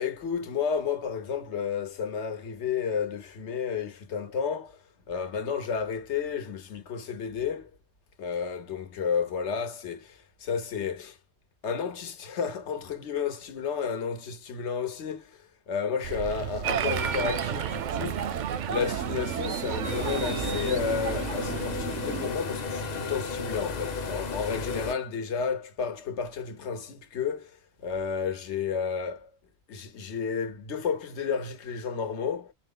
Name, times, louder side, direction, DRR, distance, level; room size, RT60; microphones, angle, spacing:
voice 1, 0.0-7.7 8.2-11.2 11.6-18.3 18.7-29.3 29.7-32.5, left 6 dB, 85° left, 1.2 m, -32 dB
sound 1, 16.0-22.3, right 10 dB, 85° right, 0.9 m, -36 dB
Applause, 16.6-21.7, right 8 dB, 60° right, 0.5 m, -32 dB
sound 2, 19.8-24.9, left 4 dB, 45° left, 0.8 m, -33 dB
4.5 x 2.1 x 3.7 m
omnidirectional pair, 1.1 m